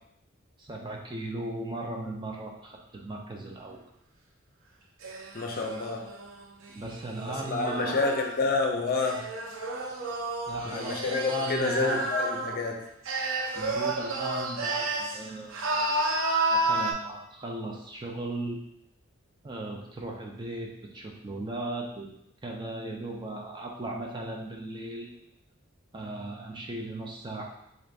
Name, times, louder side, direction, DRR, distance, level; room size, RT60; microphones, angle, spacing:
voice 1, 0.6-3.8 6.7-8.1 10.5-12.0 13.5-16.0 16.5-18.6 19.4-25.1 25.9-27.5, right 2 dB, 20° right, 1 dB, 0.4 m, -37 dB
sound 1, 5.0-8.4 9.0-12.7 13.1-15.2 15.5-16.9, right 2 dB, 80° right, 0.5 m, -31 dB
voice 2, 5.3-6.0 7.3-9.2 10.6-12.8, left 3 dB, 45° left, 2 dB, 0.5 m, -29 dB
3.8 x 2.6 x 3.3 m, 0.79 s
head